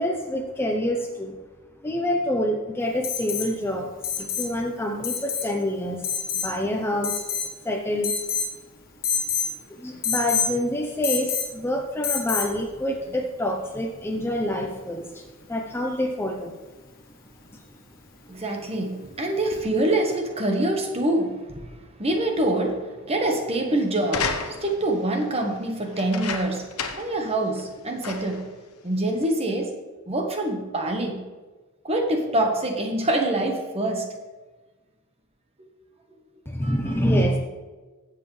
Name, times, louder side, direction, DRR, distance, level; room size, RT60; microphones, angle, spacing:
voice 1, 0.0-1.4 1.8-3.9 4.2-6.1 6.3-7.2 7.6-8.1 9.7-16.5 17.5-17.6 36.5-37.4, equal, 10° left, 2 dB, 0.7 m, -27 dB
Alarm, 3.0-3.5 4.0-4.5 5.0-5.5 6.0-6.5 7.0-7.6 8.0-8.5 9.0-9.5 10.0-10.5 11.0-11.5 12.0-12.5 14.3-14.4, left 6 dB, 40° left, 1.3 m, -27 dB
voice 2, 18.3-26.7 26.9-28.5 28.8-29.7 30.1-31.3 31.8-34.1 35.6-35.7 36.6-36.9, right 1 dB, 25° right, 3 dB, 1.2 m, -25 dB
sound 1, 24.0-24.9 25.9-27.2 27.6-27.7 28.0-28.5 29.2-29.3, left 5 dB, 80° left, 1.0 m, -31 dB
15.5 x 7.5 x 3.3 m, 1.3 s
head